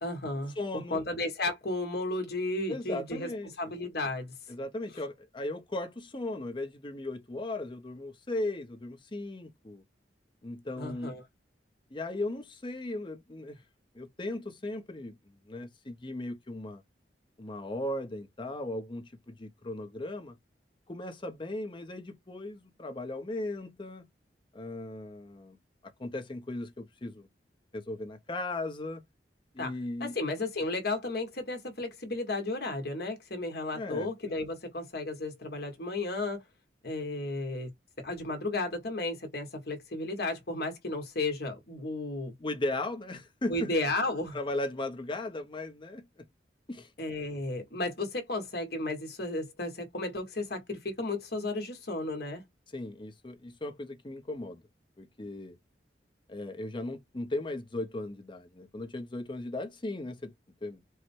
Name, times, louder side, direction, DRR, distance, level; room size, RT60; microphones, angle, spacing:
voice 1, 0.0-3.3 3.6-4.3 10.8-11.2 29.6-29.7 30.0-36.4 36.8-37.7 38.0-42.3 43.5-44.4 47.0-52.4, left 2 dB, 60° left, 1.5 m, -33 dB
voice 2, 0.6-1.0 2.7-3.5 4.5-9.8 10.4-11.2 11.9-13.6 13.9-15.2 15.5-16.8 17.4-20.3 20.9-24.1 24.5-25.6 25.8-27.3 27.7-29.0 29.5-30.2 33.7-34.1 42.4-43.7 44.3-46.1 46.7-46.9 52.7-54.6 55.0-55.6 56.3-60.3 60.6-60.8, left 2 dB, 25° left, 0.8 m, -37 dB
4.6 x 2.2 x 4.3 m
head